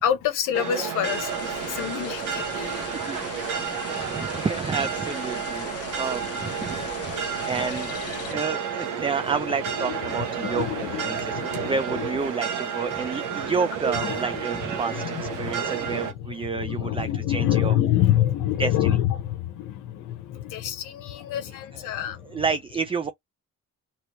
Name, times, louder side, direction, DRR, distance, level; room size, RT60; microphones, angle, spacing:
voice 1, 0.0-3.1 5.9-8.4 8.9-9.0 9.7-12.4 12.8-12.9 13.3-13.5 13.9-22.4, left 11 dB, 90° left, 0.8 m, -28 dB
sound 1, 0.5-16.1, right 7 dB, 90° right, 1.0 m, -31 dB
sound 2, 1.0-8.3, left 10 dB, 50° left, 0.6 m, -39 dB
voice 2, 3.8-6.8 7.0-7.1 7.4-7.9 8.3-17.7 18.6-19.0 21.9-22.0 22.3-23.1, right 5 dB, 20° right, 0.4 m, -30 dB
3.0 x 3.0 x 2.9 m
cardioid pair, 90°, 30 cm